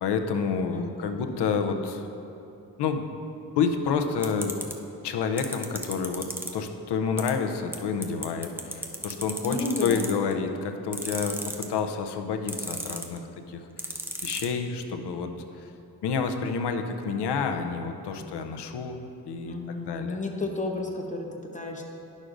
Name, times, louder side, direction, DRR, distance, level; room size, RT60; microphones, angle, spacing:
voice 1, 0.0-2.1 2.8-3.0 3.6-4.5 5.0-6.3 6.5-9.6 9.8-14.0 14.2-15.3 15.6-15.7 16.0-19.0 19.3-20.2, left 5 dB, 80° left, 6 dB, 0.7 m, -29 dB
voice 2, 0.7-1.3 9.4-10.2 19.4-21.8, left 2 dB, 20° left, 1 dB, 0.9 m, -32 dB
sound 1, 4.2-4.7 5.4-6.5 7.2-7.3 7.7-7.8 8.0-10.3 10.9-11.8 12.5-13.2 13.8-14.4, right 1 dB, 5° right, 0.5 m, -32 dB
11.0 x 6.3 x 2.6 m, 2.8 s
cardioid pair, 90°, 40 cm